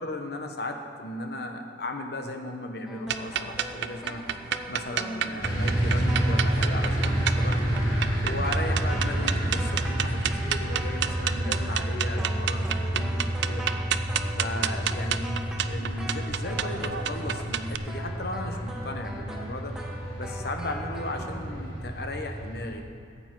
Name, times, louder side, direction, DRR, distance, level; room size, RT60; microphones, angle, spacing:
voice 1, 0.0-4.2 4.7-7.8 8.2-13.6 14.4-19.7 20.2-22.8, left 1 dB, 65° left, 5 dB, 1.0 m, -36 dB
sound 1, 2.9-17.6 17.8-21.4, equal, 5° right, 1.1 m, -41 dB
sound 2, 3.1-17.8, right 8 dB, 80° right, 0.4 m, -31 dB
sound 3, 5.4-22.7, right 1 dB, 25° left, 2.8 m, -29 dB
14.0 x 8.0 x 4.6 m, 2.4 s
head